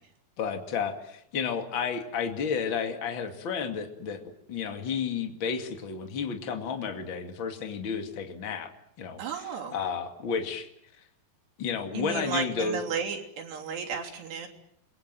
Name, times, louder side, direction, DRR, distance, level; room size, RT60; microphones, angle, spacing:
voice 1, 0.4-4.2 4.5-8.7 9.0-9.2 9.7-10.7 11.6-12.8, left 6 dB, 35° left, 5 dB, 2.5 m, -31 dB
voice 2, 9.2-9.8 11.9-14.5, right 6 dB, 90° right, 0 dB, 5.6 m, -33 dB
29.5 x 22.0 x 7.7 m, 0.72 s
omnidirectional pair, 4.7 m